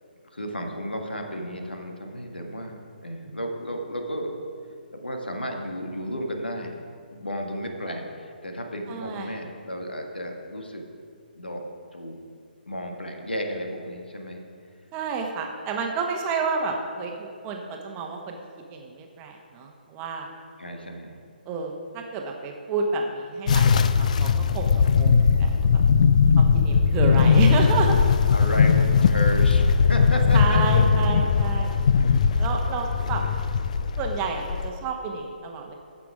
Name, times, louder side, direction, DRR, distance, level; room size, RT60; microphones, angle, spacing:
voice 1, 0.3-4.3 4.9-6.7 7.1-10.8 11.4-11.6 11.9-12.2 12.7-14.4 20.6-21.2 26.8-27.3 28.3-30.8 31.4-31.5 33.0-33.3, equal, 80° left, 2 dB, 1.7 m, -33 dB
voice 2, 8.9-9.3 14.9-18.4 18.7-20.3 21.5-25.8 26.4-28.1 30.3-31.7 32.3-33.2 34.0-35.8, right 4 dB, 20° right, 2 dB, 1.1 m, -30 dB
sound 1, 23.5-34.7, left 6 dB, 45° left, 0.5 m, -19 dB
15.5 x 6.1 x 4.9 m, 2.3 s
figure-of-eight pair, 135°, 5 cm